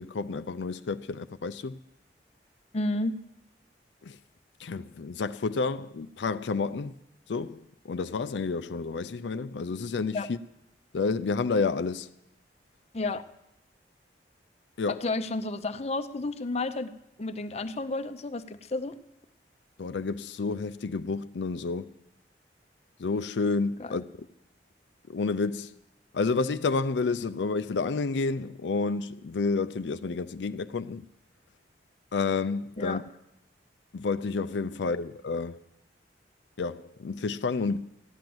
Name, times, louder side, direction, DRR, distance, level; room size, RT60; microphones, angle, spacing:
voice 1, 0.0-1.8 4.1-4.2 4.6-6.9 7.3-7.6 7.9-10.4 10.9-12.1 14.8-15.0 19.8-21.9 23.0-24.0 25.1-25.7 26.1-31.0 32.1-33.0 33.9-35.6 36.6-37.8, left 4 dB, 85° left, 0.5 m, -30 dB
voice 2, 2.7-3.2 10.1-10.3 12.9-13.2 14.9-16.9 17.2-19.0 23.8-24.0 32.8-33.0, left 2 dB, 40° left, 0.7 m, -31 dB
15.0 x 10.5 x 7.8 m
head